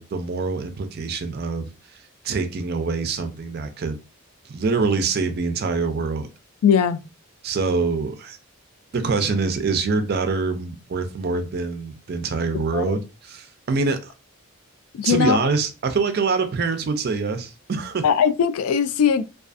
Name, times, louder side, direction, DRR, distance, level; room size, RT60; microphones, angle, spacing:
voice 1, 0.0-1.7 2.2-4.0 4.5-6.3 7.4-8.4 8.9-14.1 15.0-18.0, right 4 dB, 45° right, 0.4 m, -25 dB
voice 2, 6.6-7.0 12.5-13.0 15.0-15.4 18.0-19.2, left 7 dB, 85° left, 0.3 m, -20 dB
2.4 x 2.3 x 2.4 m
head